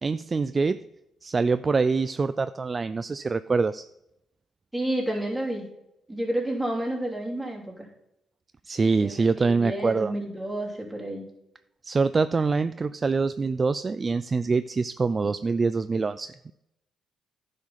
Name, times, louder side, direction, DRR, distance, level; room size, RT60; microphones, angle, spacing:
voice 1, 0.0-0.8 1.2-3.8 8.7-10.1 11.8-16.5, right 4 dB, 30° right, 13 dB, 0.3 m, -25 dB
voice 2, 4.7-5.6 6.1-7.9 9.0-11.2, right 1 dB, 5° right, -3 dB, 3.1 m, -30 dB
10.5 x 5.1 x 5.6 m, 0.85 s
cardioid pair, 90°, 0 cm